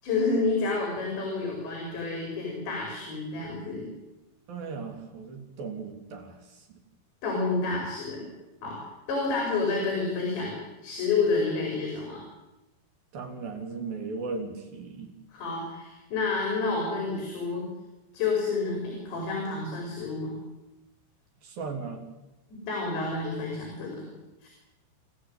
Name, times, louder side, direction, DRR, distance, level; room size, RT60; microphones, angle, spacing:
voice 1, 0.0-3.9 7.2-8.3 8.6-8.8 9.1-12.2 15.3-17.7 18.1-20.3 22.5-24.1 24.4-24.5, left 3 dB, 60° left, 0 dB, 7.3 m, -29 dB
voice 2, 4.5-6.8 13.1-15.1 21.4-22.0, right 4 dB, 50° right, 3 dB, 4.7 m, -37 dB
30.0 x 14.0 x 9.1 m, 0.99 s
omnidirectional pair, 5.7 m